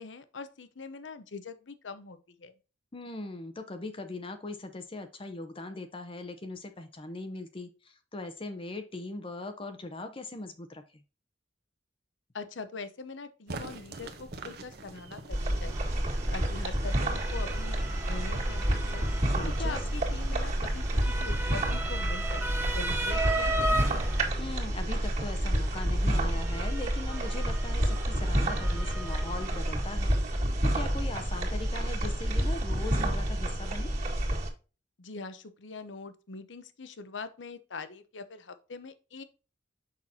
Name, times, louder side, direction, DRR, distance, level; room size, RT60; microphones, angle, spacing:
voice 1, 0.0-2.5 12.3-15.9 16.3-19.1 19.6-22.5 22.7-24.0 35.0-39.2, left 4 dB, 80° left, 0.8 m, -43 dB
voice 2, 2.9-11.0 19.3-19.8 24.4-33.9, left 2 dB, 30° left, 0.7 m, -40 dB
sound 1, 13.5-23.3, right 2 dB, 55° right, 0.9 m, -48 dB
sound 2, 15.3-34.5, right 1 dB, 40° right, 2.0 m, -29 dB
Motor vehicle (road) / Siren, 15.7-33.1, right 2 dB, 15° right, 1.0 m, -38 dB
6.4 x 5.8 x 2.7 m
head